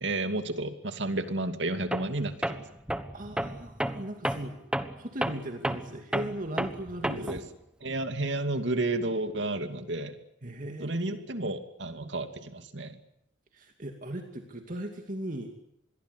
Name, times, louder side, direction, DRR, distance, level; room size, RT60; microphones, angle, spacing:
voice 1, 0.0-2.6 7.2-7.4 7.8-10.2 10.8-13.0, right 2 dB, 70° right, 8 dB, 2.6 m, -31 dB
Tools, 1.9-2.2 2.4-7.5, right 1 dB, 5° right, 1.3 m, -32 dB
voice 2, 3.1-4.6 5.0-7.5 10.4-11.2 13.5-15.5, right 1 dB, 45° right, 4 dB, 2.6 m, -38 dB
27.0 x 22.0 x 8.2 m, 0.78 s
head